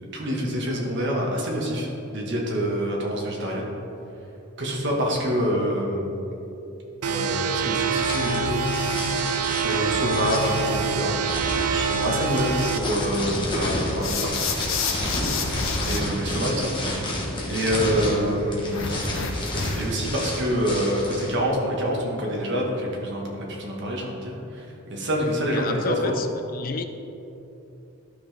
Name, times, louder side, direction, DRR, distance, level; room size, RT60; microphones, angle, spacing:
voice 1, 0.1-3.7 4.6-6.3 7.0-8.6 9.6-11.1 11.7-14.3 15.8-19.3 19.7-26.2, equal, 55° right, -2 dB, 1.5 m, -26 dB
sound 1, 7.0-12.8, right 5 dB, 85° right, 0.5 m, -26 dB
sound 2, 8.0-21.3, left 1 dB, 20° left, 1.3 m, -31 dB
sound 3, 14.0-16.0 18.7-20.0, left 4 dB, 60° left, 0.9 m, -28 dB
voice 2, 25.5-26.3 26.5-26.8, left 4 dB, 40° left, 8 dB, 0.4 m, -30 dB
12.0 x 5.8 x 3.5 m, 3.0 s
head